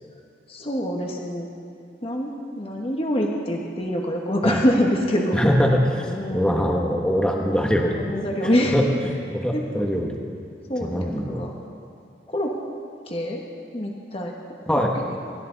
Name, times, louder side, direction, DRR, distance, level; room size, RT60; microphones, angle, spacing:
voice 1, 0.5-1.5 2.0-2.3 2.6-5.4 6.1-6.6 7.4-8.7 9.5-10.1 10.7-11.5 12.3-12.6 13.1-13.4 13.7-14.3 14.7-14.8, equal, 30° left, 0 dB, 1.5 m, -25 dB
voice 2, 5.3-8.1 8.4-8.8 9.3-10.2 10.8-11.4 14.7-14.9, equal, 5° left, 0 dB, 1.3 m, -23 dB
25.5 x 13.0 x 4.0 m, 2.4 s
head